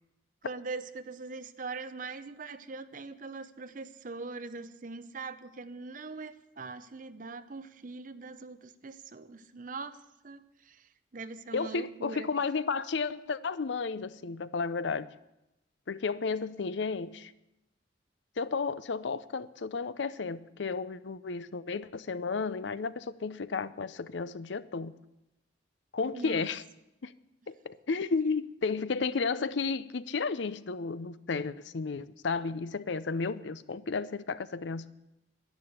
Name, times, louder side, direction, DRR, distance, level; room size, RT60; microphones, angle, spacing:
voice 1, 0.4-12.3 26.1-26.5, right 3 dB, 45° right, 12 dB, 0.7 m, -42 dB
voice 2, 11.5-15.1 15.9-17.3 18.4-24.9 25.9-26.6 27.0-27.1 27.5-34.9, left 4 dB, 75° left, 15 dB, 0.6 m, -33 dB
11.0 x 10.5 x 8.0 m, 0.90 s
head